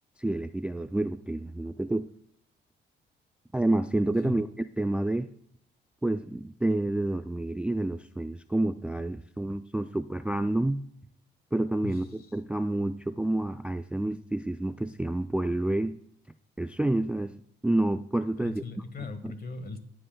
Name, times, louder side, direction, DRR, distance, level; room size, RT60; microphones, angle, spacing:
voice 1, 0.2-2.1 3.5-5.3 6.0-10.8 11.5-16.0 16.6-17.3 17.6-18.6, right 1 dB, 5° right, 11 dB, 0.3 m, -29 dB
voice 2, 11.8-12.3 18.4-19.8, left 3 dB, 50° left, 10 dB, 1.4 m, -39 dB
14.5 x 7.8 x 2.2 m, 0.67 s
cardioid pair, 90°, 20 cm